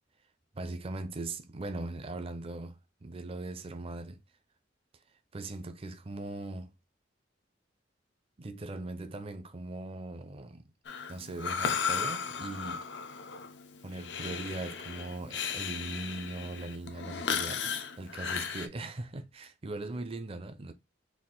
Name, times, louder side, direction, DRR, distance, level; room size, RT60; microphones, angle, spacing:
voice 1, 0.5-4.2 5.3-6.7 8.4-10.6 11.1-12.9 13.8-20.7, right 2 dB, 30° right, 0.5 m, -40 dB
Breathing, 10.9-18.7, left 6 dB, 70° left, 0.5 m, -35 dB
4.1 x 2.4 x 3.7 m
head